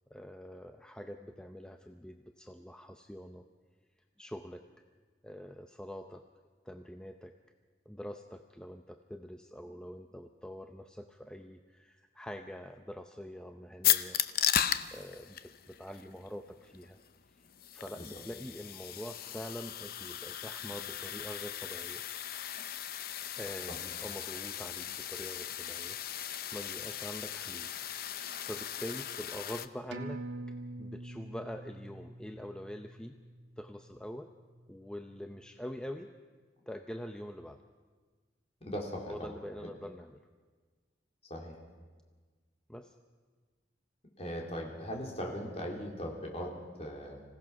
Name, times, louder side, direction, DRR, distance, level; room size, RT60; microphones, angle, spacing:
voice 1, 0.1-3.5 4.2-4.6 5.2-6.2 6.6-7.3 7.9-14.2 14.9-17.0 17.3-17.4 17.7-22.0 23.4-26.0 26.5-27.8 28.1-33.2 33.6-34.3 34.7-36.1 36.7-37.6 39.1-40.2 42.7-42.9, equal, 5° left, 5 dB, 0.6 m, -45 dB
sound 1, 13.8-29.7, left 11 dB, 55° left, 0.7 m, -36 dB
sound 2, 29.9-34.8 35.2-35.3, right 2 dB, 70° right, 1.5 m, -45 dB
voice 2, 38.6-39.3 39.6-39.7 41.3-41.6 44.2-47.2, equal, 35° left, -1 dB, 3.5 m, -39 dB
26.0 x 16.5 x 6.1 m, 1.4 s
head